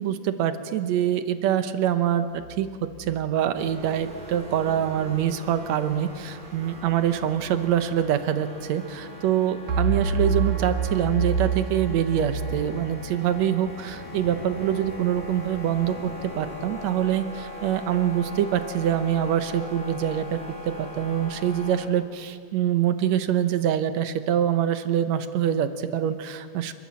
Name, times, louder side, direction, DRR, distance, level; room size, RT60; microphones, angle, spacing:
voice 1, 0.0-20.4 20.7-26.7, right 10 dB, 70° right, 10 dB, 1.9 m, -25 dB
sound 1, 2.3-3.2 9.7-12.7, right 4 dB, 90° right, 3.2 m, -27 dB
sound 2, 3.5-21.9, left 1 dB, 20° right, 1.8 m, -40 dB
Purr, 11.9-17.4, left 2 dB, 30° left, 0.8 m, -45 dB
29.0 x 13.0 x 7.4 m, 2.1 s
omnidirectional pair, 3.6 m